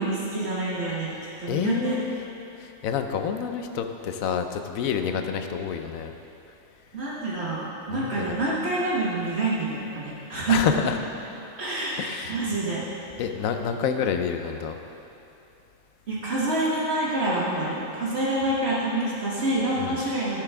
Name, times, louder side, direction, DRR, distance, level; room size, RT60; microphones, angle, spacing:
voice 1, 0.0-2.0 6.9-10.7 11.6-12.8 16.1-20.4, right 2 dB, 55° right, -7 dB, 1.5 m, -27 dB
voice 2, 1.5-2.2 2.6-6.1 7.9-8.3 10.5-11.0 12.0-12.4 13.2-14.8 19.8-20.0, left 7 dB, 90° left, 6 dB, 1.1 m, -28 dB
15.5 x 6.6 x 3.5 m, 2.9 s
omnidirectional pair, 1.4 m